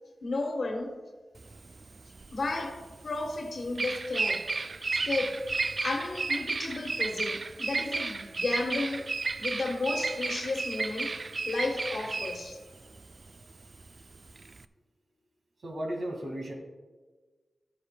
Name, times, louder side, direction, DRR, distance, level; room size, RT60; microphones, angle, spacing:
voice 1, 0.2-1.0 2.3-4.5 5.0-5.4 5.8-9.1 9.4-11.2 11.4-12.6, left 2 dB, 70° left, 1.3 m, -33 dB
Bird vocalization bird call bird song, 1.4-14.6, right 3 dB, 55° right, 0.3 m, -33 dB
voice 2, 15.6-16.5, right 1 dB, 75° right, 2.0 m, -34 dB
13.5 x 9.6 x 2.3 m
cardioid pair, 55°, 0 cm